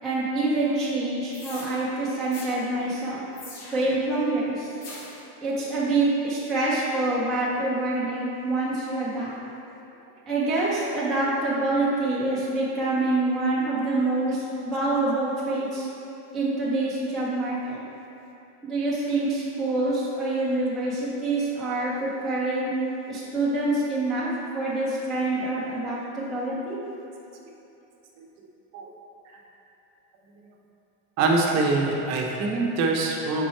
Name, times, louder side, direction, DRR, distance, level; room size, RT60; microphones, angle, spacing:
voice 1, 0.0-3.2 3.7-4.7 5.4-9.3 10.3-15.9 16.3-17.8 18.6-22.7 23.1-24.3 24.5-26.8, right 2 dB, ahead, -10 dB, 0.5 m, -26 dB
sound 1, 1.3-1.7 2.3-2.5 3.3-4.0 4.8-5.2, left 3 dB, 40° left, 0.9 m, -42 dB
voice 2, 31.2-33.4, right 3 dB, 40° right, -1 dB, 0.8 m, -24 dB
5.8 x 4.6 x 4.4 m, 2.9 s
cardioid pair, 175°, 40 cm